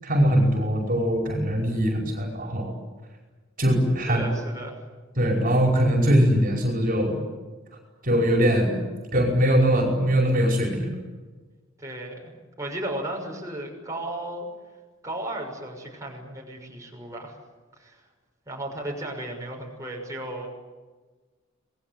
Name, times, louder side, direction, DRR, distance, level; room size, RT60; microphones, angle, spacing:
voice 1, 0.0-2.7 3.6-4.2 5.2-7.2 8.0-8.7 9.1-10.9, equal, 45° right, 1 dB, 5.4 m, -21 dB
voice 2, 4.0-4.9 11.8-14.5 15.0-17.4 17.7-18.1 18.5-20.5, right 1 dB, 15° right, 0 dB, 6.2 m, -35 dB
27.5 x 21.0 x 9.3 m, 1.3 s
head